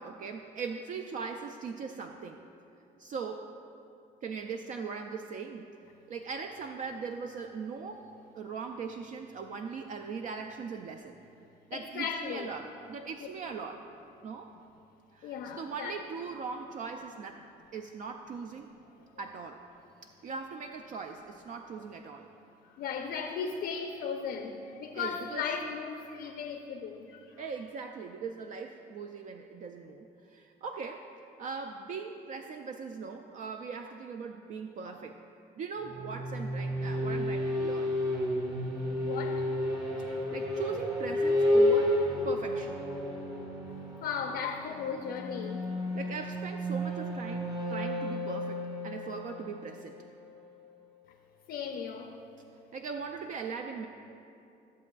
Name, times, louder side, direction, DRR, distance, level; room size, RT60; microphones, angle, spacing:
voice 1, 0.0-2.4 3.0-3.5 4.2-5.7 6.1-8.1 8.3-11.2 11.7-13.8 14.2-14.5 15.1-17.4 17.7-18.7 19.2-19.6 20.0-22.3 24.9-25.5 27.4-31.1 31.4-35.2 35.6-38.0 40.3-42.0 42.2-42.8 45.9-50.0 52.7-53.9, right 5 dB, 50° right, 5 dB, 0.4 m, -40 dB
voice 2, 11.7-12.5 13.2-13.3 15.2-15.9 22.6-27.4 39.0-39.5 39.7-40.0 44.0-45.7 51.5-52.1, left 6 dB, 75° left, 4 dB, 0.6 m, -36 dB
sound 1, 35.8-50.5, left 1 dB, 20° right, 1.2 m, -31 dB
14.0 x 7.2 x 2.3 m, 2.7 s
cardioid pair, 110°, 17 cm